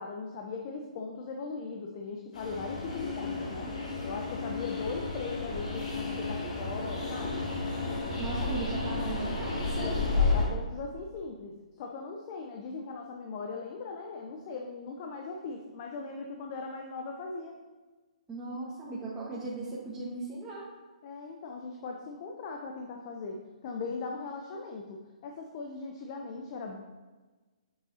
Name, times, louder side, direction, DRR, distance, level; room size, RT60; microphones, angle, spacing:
voice 1, 0.0-3.7 4.0-7.4 9.7-17.6 21.0-26.8, left 4 dB, 40° left, 2 dB, 0.7 m, -39 dB
Train, 2.3-10.5, left 3 dB, 80° left, 1.9 m, -32 dB
voice 2, 8.2-10.0 18.3-20.6, right 2 dB, 10° right, -9 dB, 1.2 m, -37 dB
7.8 x 5.3 x 2.7 m, 1.3 s
hypercardioid pair, 135°, 4 cm